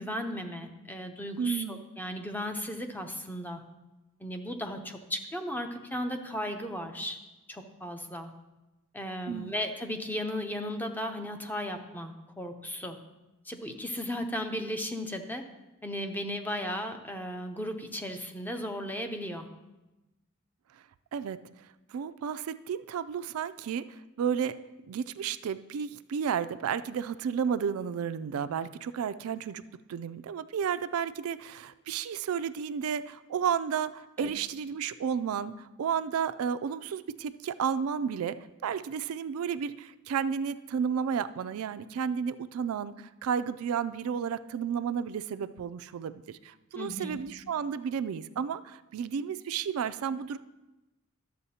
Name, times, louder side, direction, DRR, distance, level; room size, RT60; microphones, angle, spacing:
voice 1, 0.0-3.6 4.2-7.2 7.5-8.3 8.9-13.0 13.4-15.4 15.8-19.5 34.2-34.3 46.7-47.2, left 1 dB, 10° left, 5 dB, 0.6 m, -35 dB
voice 2, 1.4-1.8 9.3-9.6 21.1-21.4 21.9-24.5 24.9-29.6 29.9-38.4 38.6-50.4, right 7 dB, 85° right, 13 dB, 0.3 m, -32 dB
12.0 x 7.4 x 2.8 m, 1.0 s
head